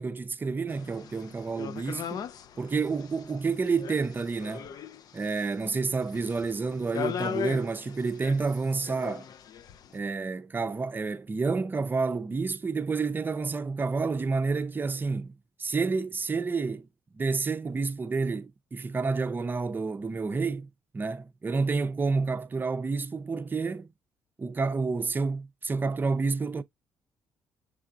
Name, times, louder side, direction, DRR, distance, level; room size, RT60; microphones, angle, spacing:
voice 1, 0.0-2.2 2.6-4.7 5.1-9.3 9.9-16.9 17.1-20.7 20.9-23.9 24.4-26.6, right 4 dB, 25° right, 0.5 m, -29 dB
sound 1, 0.7-10.0, left 8 dB, 60° left, 0.4 m, -39 dB
6.5 x 3.3 x 2.4 m
supercardioid pair, 75°, 8 cm